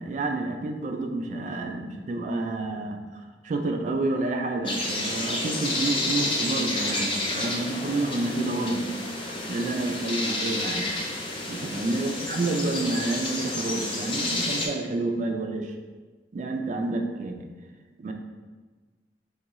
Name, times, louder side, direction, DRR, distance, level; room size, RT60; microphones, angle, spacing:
voice 1, 0.0-8.9 9.5-10.9 11.5-15.7 16.3-17.5 18.0-18.1, right 2 dB, 45° right, 4 dB, 0.3 m, -29 dB
sound 1, 4.7-14.7, left 2 dB, 30° left, 0.5 m, -30 dB
3.0 x 3.0 x 3.6 m, 1.3 s
head